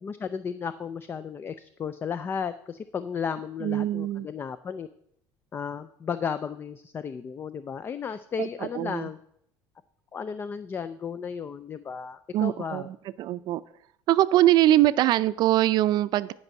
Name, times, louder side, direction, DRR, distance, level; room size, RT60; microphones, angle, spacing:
voice 1, 0.0-4.9 5.5-9.2 10.1-12.9, left 6 dB, 25° left, 13 dB, 0.4 m, -34 dB
voice 2, 3.6-4.3 8.4-9.1 12.3-13.6 14.1-16.3, right 14 dB, 50° right, 14 dB, 0.5 m, -23 dB
10.5 x 5.4 x 7.4 m, 0.70 s
cardioid pair, 160°, 9 cm